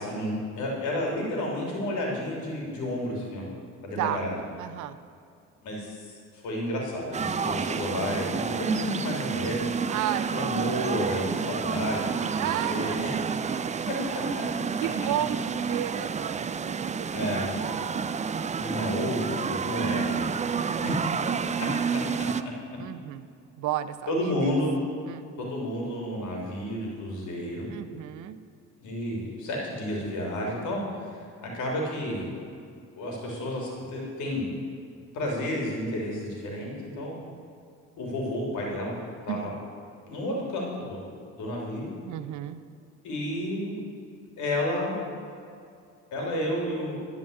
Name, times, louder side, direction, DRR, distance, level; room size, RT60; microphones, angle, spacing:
voice 1, 0.0-3.4 3.8-4.4 5.6-6.2 6.4-9.6 10.3-13.1 13.9-14.2 17.1-17.5 18.6-20.2 20.8-20.9 24.1-24.7 25.4-27.7 28.8-30.8 31.1-32.3 33.0-34.5 35.1-37.2 38.0-39.0 39.3-39.5 40.1-41.0 41.4-41.9 43.0-43.8 44.4-45.0 46.1-47.0, left 1 dB, 75° left, -2 dB, 3.1 m, -31 dB
voice 2, 4.6-5.0 9.9-10.6 12.3-13.7 14.4-17.8 18.3-18.6 20.5-21.0 21.5-22.0 22.8-23.2 23.6-24.5 25.1-25.3 27.7-28.4 39.3-39.5 42.1-42.6, right 12 dB, 75° right, 13 dB, 0.6 m, -34 dB
sound 1, 7.1-22.4, right 6 dB, 25° right, 0.4 m, -30 dB
11.5 x 5.2 x 7.9 m, 2.4 s
supercardioid pair, 65°, 30 cm